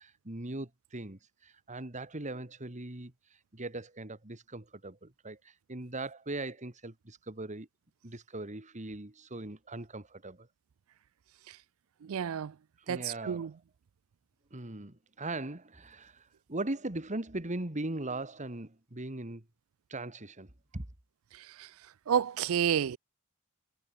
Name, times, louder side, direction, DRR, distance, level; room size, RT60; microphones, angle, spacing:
voice 1, 0.0-7.7 8.0-10.5 12.8-13.6 14.5-19.4 19.9-20.8, right 2 dB, 35° right, 2.2 m, -40 dB
voice 2, 12.0-12.5 12.9-13.5 21.6-21.7 22.1-23.0, right 8 dB, 70° right, 0.4 m, -30 dB
head